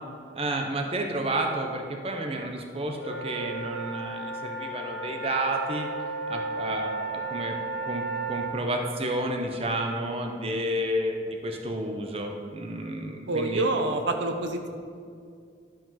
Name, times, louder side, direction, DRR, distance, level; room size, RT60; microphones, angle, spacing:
voice 1, 0.3-5.9 6.3-7.6 7.8-13.7, right 1 dB, 30° right, 3 dB, 0.8 m, -31 dB
sound 1, 2.9-8.5, right 3 dB, 60° left, 1.1 m, -34 dB
voice 2, 13.3-14.7, right 2 dB, 80° right, 6 dB, 0.8 m, -27 dB
11.5 x 5.1 x 5.8 m, 2.3 s
head